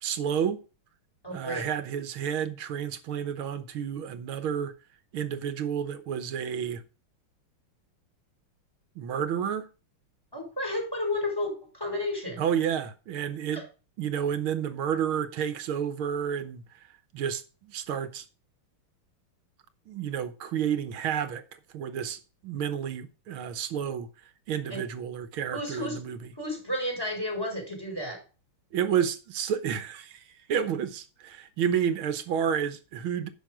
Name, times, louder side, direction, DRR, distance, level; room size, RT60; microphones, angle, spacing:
voice 1, 0.0-0.6 1.3-4.7 5.1-6.8 9.0-9.7 12.4-13.6 14.0-16.6 17.1-18.3 19.9-21.4 21.7-24.1 24.5-26.2 28.7-33.3, right 8 dB, 75° right, 1.9 m, -30 dB
voice 2, 1.2-1.7 10.3-12.4 13.5-13.6 24.7-24.8 25.5-26.0 26.4-28.2, left 1 dB, 10° left, 4.5 m, -32 dB
10.5 x 6.4 x 5.0 m
omnidirectional pair, 2.4 m